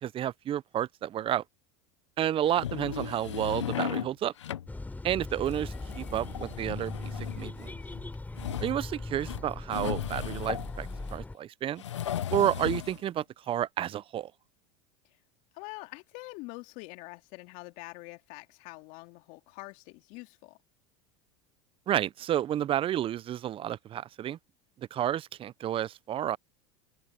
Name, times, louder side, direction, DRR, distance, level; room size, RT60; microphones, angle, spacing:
voice 1, 0.0-1.4 2.2-4.3 5.0-7.7 8.6-11.8 12.3-14.3 21.9-24.4 24.9-26.4, right 11 dB, 35° right, 0.7 m, -31 dB
sound 1, 2.4-4.1 4.4-4.7 5.3-11.1 11.8-13.0, left 10 dB, 90° left, 0.9 m, -36 dB
sound 2, 4.7-11.3, left 2 dB, 10° left, 3.9 m, -39 dB
voice 2, 15.5-20.6, left 24 dB, 60° left, 2.5 m, -45 dB
open air
hypercardioid pair, 90°, 15 cm